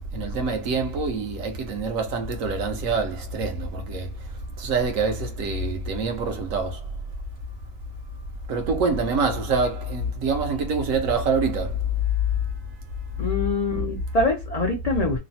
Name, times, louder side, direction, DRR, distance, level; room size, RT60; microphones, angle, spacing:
voice 1, 0.1-4.1 4.6-6.8 8.5-11.7, right 4 dB, 70° right, 1.1 m, -25 dB
voice 2, 13.2-15.2, left 2 dB, 75° left, 0.3 m, -24 dB
3.0 x 2.0 x 2.7 m
omnidirectional pair, 1.5 m